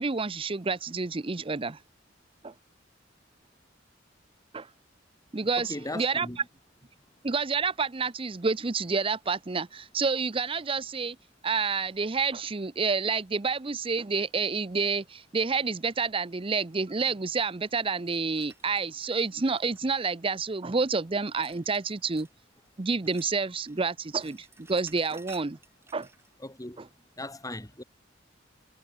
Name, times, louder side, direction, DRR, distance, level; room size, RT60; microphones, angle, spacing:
voice 1, 0.0-1.8 2.4-2.5 4.5-4.7 5.3-6.3 7.2-11.2 11.4-22.3 22.8-25.6 25.9-26.1 26.8-26.9, right 4 dB, 30° right, 0.6 m, -29 dB
voice 2, 5.6-6.4 26.4-26.8 27.2-27.8, left 1 dB, 20° left, 4.1 m, -38 dB
sound 1, 18.0-20.2 21.4-22.4 22.7-23.8 24.0-26.3, right 3 dB, 15° right, 6.9 m, -55 dB
head